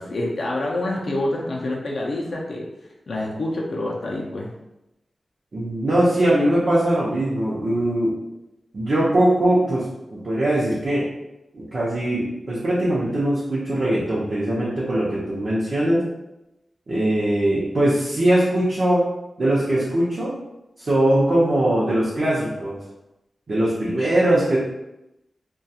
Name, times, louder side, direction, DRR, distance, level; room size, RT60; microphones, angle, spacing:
voice 1, 0.0-2.7 3.1-4.5, left 1 dB, 65° left, -2 dB, 0.4 m, -27 dB
voice 2, 5.5-8.1 8.7-9.8 10.1-11.0 11.5-16.0 16.9-19.0 19.4-20.3 20.8-22.8 23.5-24.6, right 1 dB, 55° right, -8 dB, 0.6 m, -21 dB
2.3 x 2.2 x 2.7 m, 0.92 s
wide cardioid pair, 125°, 0 cm